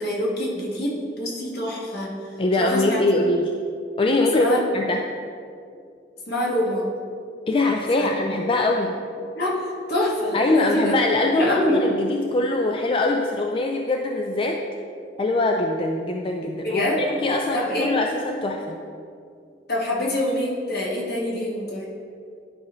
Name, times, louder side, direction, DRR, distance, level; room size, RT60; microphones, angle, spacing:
voice 1, 0.0-2.1 2.6-3.3 4.3-4.6 6.3-6.9 7.9-8.1 9.3-9.6 9.9-11.0 11.3-11.8 16.6-17.0 17.5-18.0 19.7-21.9, left 1 dB, 60° left, -4 dB, 1.6 m, -25 dB
voice 2, 2.4-3.5 4.0-5.1 7.5-9.0 10.3-14.6 15.2-18.8, left 2 dB, 30° left, 2 dB, 0.4 m, -22 dB
11.0 x 5.3 x 3.1 m, 2.4 s
head